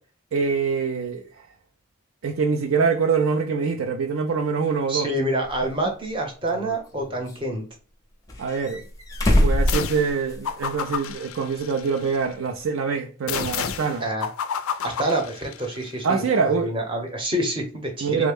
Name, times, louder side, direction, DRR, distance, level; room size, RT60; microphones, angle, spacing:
voice 1, 0.3-1.5 2.2-5.1 8.4-8.8 9.3-14.0 16.0-16.7 18.0-18.3, right 5 dB, 65° right, 0.4 m, -24 dB
voice 2, 4.9-7.6 14.0-14.3 14.8-18.3, right 1 dB, 25° right, 0.8 m, -27 dB
sound 1, 5.5-5.6 6.5-7.4 8.3-10.6 10.9-11.0 12.6-12.7, left 1 dB, 15° left, 0.5 m, -24 dB
sound 2, 9.7-10.1 10.4-12.2 13.3-15.9, left 7 dB, 70° left, 0.3 m, -31 dB
3.4 x 2.1 x 3.4 m
head